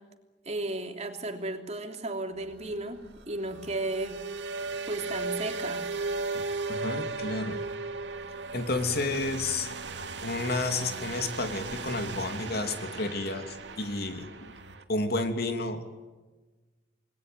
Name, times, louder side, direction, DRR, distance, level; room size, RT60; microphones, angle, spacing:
voice 1, 0.4-3.0 3.3-4.2 4.9-5.9, right 2 dB, 40° right, 5 dB, 3.2 m, -34 dB
sound 1, 2.4-14.8, right 3 dB, 75° right, 2.5 m, -36 dB
voice 2, 6.3-7.6 8.5-9.7 10.2-14.5 14.9-15.8, left 2 dB, 60° left, 7 dB, 2.9 m, -31 dB
28.5 x 21.0 x 9.4 m, 1.3 s
head